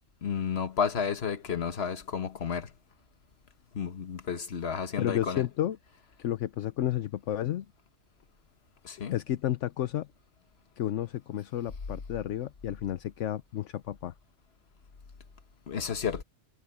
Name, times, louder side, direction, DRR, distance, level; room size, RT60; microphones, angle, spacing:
voice 1, 0.2-2.7 3.7-5.4 8.8-9.2 15.7-16.2, left 7 dB, 55° left, 1.5 m, -31 dB
voice 2, 5.0-5.8 6.2-7.6 9.1-10.1 10.8-14.1, left 12 dB, 75° left, 1.0 m, -31 dB
omnidirectional pair, 1.3 m